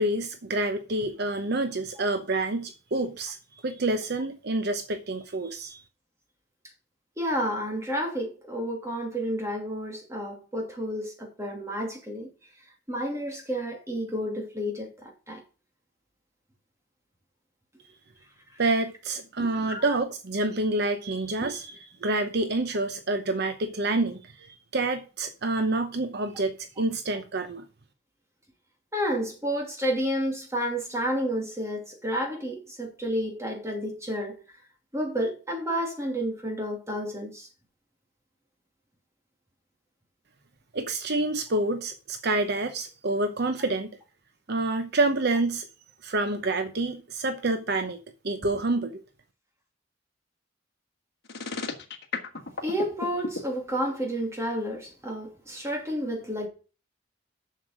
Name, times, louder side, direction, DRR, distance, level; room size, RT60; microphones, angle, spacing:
voice 1, 0.0-3.4 3.6-5.8 18.6-27.6 40.7-43.9 44.5-45.7 46.0-48.0 48.2-48.9, right 2 dB, 55° right, 0.8 m, -28 dB
voice 2, 7.2-12.3 12.9-15.4 19.4-20.0 21.4-21.5 28.9-34.4 34.9-37.5 52.6-56.5, equal, 15° right, 2.7 m, -30 dB
sound 1, 51.2-53.4, left 4 dB, 60° left, 1.7 m, -33 dB
7.4 x 6.7 x 6.4 m
head